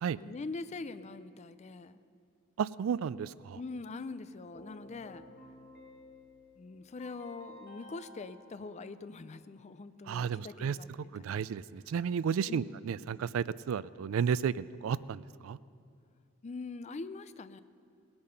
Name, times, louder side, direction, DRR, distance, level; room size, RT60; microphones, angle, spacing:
voice 1, 0.1-2.0 3.6-5.2 6.6-11.4 12.5-12.7 16.4-17.6, left 3 dB, 35° left, 13 dB, 0.4 m, -43 dB
voice 2, 2.6-3.6 10.1-10.8 11.1-15.6, right 7 dB, 75° right, 19 dB, 0.3 m, -33 dB
Keyboard (musical), 4.5-9.5, left 1 dB, 50° left, 2.0 m, -54 dB
19.5 x 8.7 x 5.6 m, 2.3 s
head